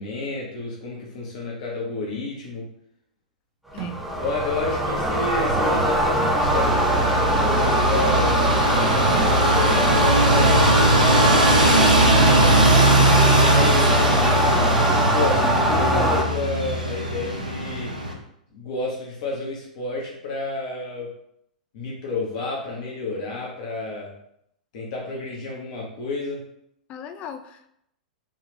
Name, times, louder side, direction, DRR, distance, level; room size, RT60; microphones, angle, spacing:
voice 1, 0.0-2.7 4.2-11.9 13.0-14.0 14.9-17.9 18.5-21.1 21.7-24.1 24.7-26.4, left 3 dB, 50° left, -3 dB, 0.8 m, -30 dB
sound 1, 3.7-16.2, right 1 dB, 5° right, 0.6 m, -22 dB
sound 2, 3.8-4.4 6.2-6.9 8.0-8.6 9.1-9.9 11.2-11.6 13.1-13.7, right 7 dB, 55° right, 0.9 m, -38 dB
sound 3, 6.4-18.1, right 1 dB, 85° right, 0.7 m, -20 dB
voice 2, 11.6-11.9 26.9-27.7, left 8 dB, 30° left, 8 dB, 0.3 m, -38 dB
3.7 x 2.4 x 3.1 m, 0.74 s
figure-of-eight pair, 100°, 4 cm